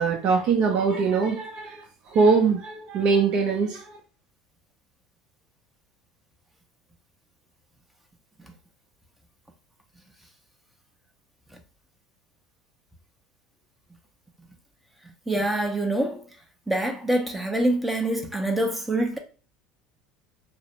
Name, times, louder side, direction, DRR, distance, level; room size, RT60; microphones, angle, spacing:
voice 1, 0.0-4.0, right 5 dB, 55° right, 0.6 m, -22 dB
voice 2, 15.3-16.2 16.7-19.2, right 1 dB, 5° right, 0.6 m, -25 dB
2.4 x 2.0 x 2.9 m
hypercardioid pair, 85°, 2 cm